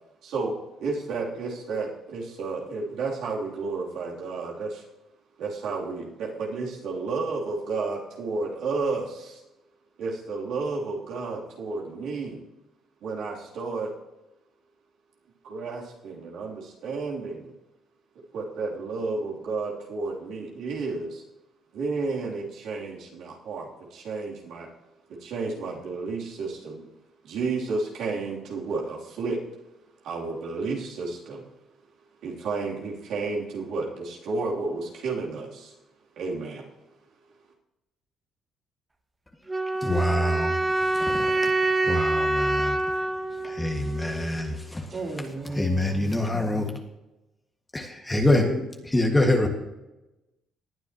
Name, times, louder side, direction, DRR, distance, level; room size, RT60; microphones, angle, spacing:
voice 1, 0.2-4.8 5.4-9.4 10.0-12.4 13.0-13.9 15.4-17.5 18.3-21.2 21.7-24.7 25.2-26.9 27.2-29.4 30.0-31.4 32.2-35.7 36.2-36.6, right 3 dB, 75° right, -4 dB, 3.1 m, -31 dB
sound 1, 39.5-44.5, right 2 dB, 20° right, 1.4 m, -26 dB
voice 2, 39.8-40.5 41.0-41.3 41.9-42.8 43.4-44.8 45.6-46.8 47.7-49.5, left 1 dB, 15° left, 2 dB, 1.8 m, -25 dB
voice 3, 44.9-46.2, right 3 dB, 45° right, -1 dB, 3.9 m, -35 dB
19.0 x 9.4 x 3.0 m, 0.99 s
cardioid pair, 85°, 0 cm